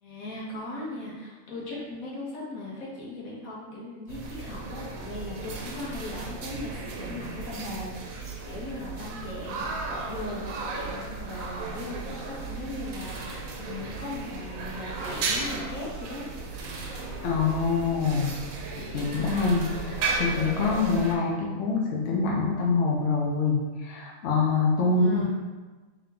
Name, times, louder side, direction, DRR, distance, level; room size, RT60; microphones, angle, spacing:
voice 1, 0.0-16.2 24.9-25.3, left 2 dB, 90° left, -5 dB, 1.5 m, -38 dB
sound 1, 4.1-21.2, right 3 dB, 85° right, 1.0 m, -35 dB
voice 2, 17.2-18.3 18.9-25.3, left 4 dB, 65° left, -2 dB, 1.0 m, -25 dB
3.5 x 2.8 x 3.7 m, 1.3 s
omnidirectional pair, 1.4 m